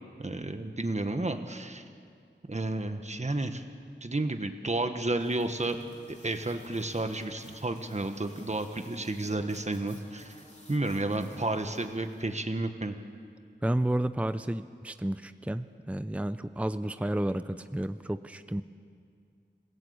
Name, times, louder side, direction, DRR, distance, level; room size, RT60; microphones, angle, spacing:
voice 1, 0.2-1.8 2.5-3.6 4.0-5.8 6.1-10.4 10.7-12.9, right 2 dB, 35° right, 7 dB, 1.5 m, -31 dB
sound 1, 5.2-12.3, left 1 dB, 35° left, 3.4 m, -53 dB
voice 2, 13.6-18.6, right 1 dB, 5° right, 11 dB, 0.6 m, -31 dB
27.0 x 16.5 x 8.7 m, 2.3 s
wide cardioid pair, 55°, 20 cm